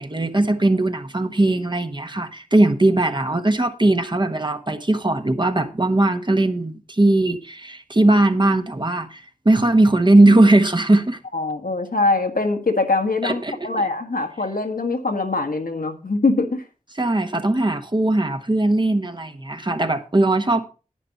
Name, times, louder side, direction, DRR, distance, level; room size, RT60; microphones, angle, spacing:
voice 1, 0.0-11.2 13.2-13.8 17.0-20.7, right 2 dB, 35° right, 1.2 m, -19 dB
voice 2, 11.3-16.6, left 3 dB, 85° left, 1.5 m, -23 dB
10.5 x 9.3 x 4.1 m
wide cardioid pair, 65°, 14 cm